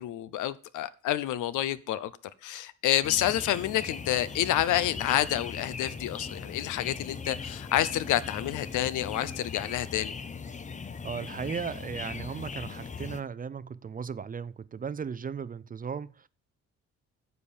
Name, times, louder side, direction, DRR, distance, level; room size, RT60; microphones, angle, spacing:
voice 1, 0.0-2.1 2.4-10.1, left 13 dB, 80° left, 0.7 m, -28 dB
sound 1, 3.0-13.2, left 5 dB, 25° left, 0.7 m, -39 dB
voice 2, 11.0-16.3, right 6 dB, 30° right, 0.5 m, -36 dB
9.7 x 5.5 x 7.0 m
cardioid pair, 90°, 30 cm